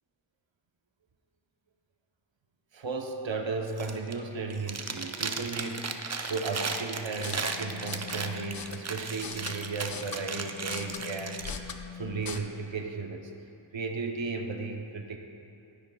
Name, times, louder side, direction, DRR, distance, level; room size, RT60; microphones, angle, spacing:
voice 1, 2.7-13.3 13.7-15.2, right 4 dB, 70° right, 3 dB, 0.9 m, -35 dB
Chewing mastication, 3.7-4.2 4.5-11.5, right 4 dB, 35° right, 0.5 m, -36 dB
sound 1, 7.1-12.4, left 6 dB, 50° left, 0.6 m, -41 dB
12.0 x 10.0 x 2.3 m, 2.9 s
wide cardioid pair, 55°, 47 cm